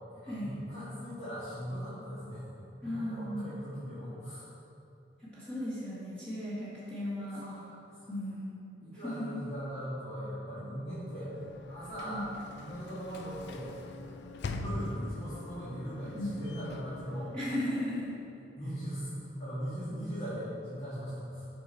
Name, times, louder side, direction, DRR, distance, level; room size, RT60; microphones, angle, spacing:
voice 1, 0.1-2.5 2.8-4.4 7.3-8.1 8.8-11.4 11.7-12.3 12.6-13.8 14.5-17.4 18.6-21.5, equal, 35° left, -13 dB, 1.7 m, -39 dB
voice 2, 2.8-3.5 5.2-7.4 8.1-8.6 9.0-9.3 12.0-12.2 16.1-16.4 17.3-18.1 19.9-20.0, left 1 dB, 5° left, -11 dB, 1.6 m, -36 dB
Sliding door / Slam, 11.0-18.0, left 2 dB, 65° left, 0.4 m, -43 dB
6.9 x 5.5 x 4.3 m, 2.6 s
head